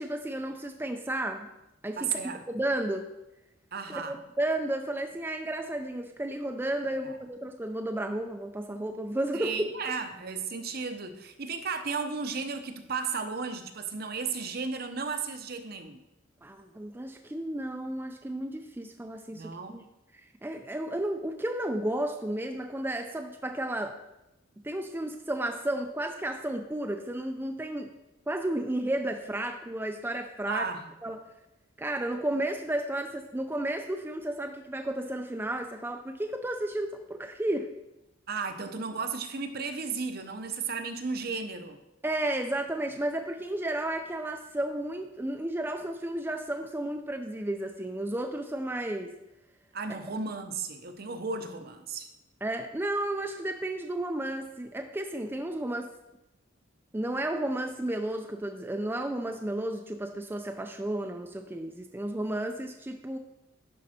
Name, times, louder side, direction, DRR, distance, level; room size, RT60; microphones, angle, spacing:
voice 1, 0.0-1.5 1.8-3.1 3.9-9.7 16.4-19.8 20.4-24.0 24.6-27.9 28.3-30.7 31.0-31.2 31.8-37.7 42.0-49.1 52.4-55.9 56.9-63.2, right 1 dB, 10° right, 5 dB, 0.4 m, -32 dB
voice 2, 2.0-2.4 3.7-4.2 6.9-7.1 9.3-16.0 19.3-19.8 30.5-30.8 38.3-41.8 49.7-52.1, right 5 dB, 50° right, 7 dB, 0.8 m, -34 dB
11.0 x 5.3 x 4.3 m, 0.92 s
head